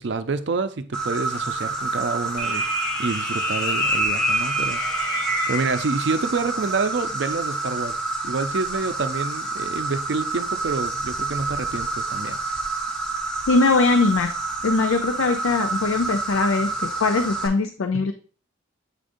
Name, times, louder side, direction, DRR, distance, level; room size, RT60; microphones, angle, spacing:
voice 1, 0.0-2.7 3.0-4.8 5.5-8.0 8.2-12.4 17.9-18.0, right 4 dB, 65° right, 0.5 m, -27 dB
Insect, 0.9-17.5, right 3 dB, 5° left, 1.2 m, -28 dB
sound 1, 2.4-5.9, equal, 35° left, 1.5 m, -26 dB
voice 2, 13.5-14.3 14.6-18.1, left 3 dB, 90° left, 0.5 m, -21 dB
8.2 x 5.0 x 2.6 m
head